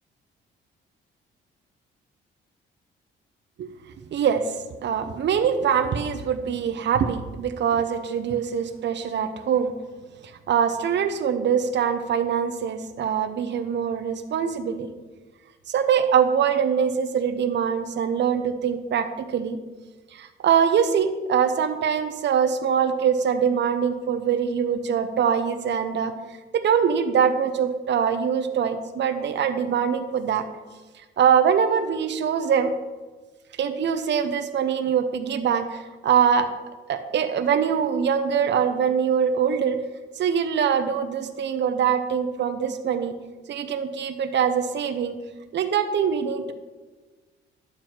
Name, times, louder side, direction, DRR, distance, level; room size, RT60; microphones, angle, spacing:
voice 1, 4.1-4.5 4.8-9.7 10.5-14.9 15.7-19.6 20.1-26.1 26.5-30.5 31.2-32.7 33.6-36.5 36.9-39.8 40.2-43.2 43.5-45.2 45.5-46.5, right 7 dB, 60° right, 7 dB, 1.1 m, -23 dB
11.5 x 8.2 x 4.6 m, 1.3 s
cardioid pair, 90°, 20 cm